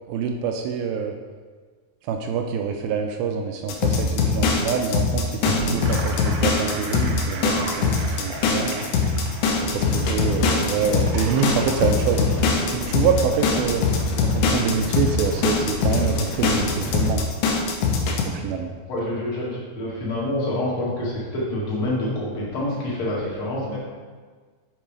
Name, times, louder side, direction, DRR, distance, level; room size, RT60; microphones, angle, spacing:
voice 1, 0.1-1.1 2.1-8.7 9.6-13.8 14.2-17.2 18.2-18.7, right 6 dB, 85° right, 4 dB, 2.1 m, -26 dB
sound 1, 3.7-18.2, left 5 dB, 90° left, 2.9 m, -22 dB
Gurgling / Sink (filling or washing), 5.3-12.8, right 1 dB, 70° right, 2.1 m, -33 dB
sound 2, 9.6-17.1, left 2 dB, 75° left, 2.9 m, -32 dB
voice 2, 18.9-23.8, left 1 dB, 40° left, -7 dB, 2.4 m, -27 dB
7.3 x 5.4 x 4.9 m, 1.5 s
omnidirectional pair, 4.7 m